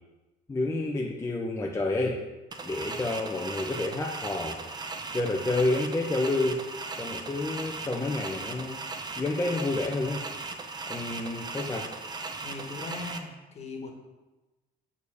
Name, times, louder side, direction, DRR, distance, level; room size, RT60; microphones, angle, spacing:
voice 1, 0.5-2.2 2.6-4.6 5.1-6.6 7.0-8.8 9.2-10.3 10.9-11.9, left 2 dB, 15° left, -1 dB, 0.7 m, -29 dB
sound 1, 2.5-13.2, right 3 dB, 25° right, 0.7 m, -38 dB
voice 2, 12.4-13.9, left 3 dB, 40° left, 2 dB, 1.5 m, -39 dB
6.8 x 4.8 x 4.9 m, 1.1 s
cardioid pair, 110°, 17 cm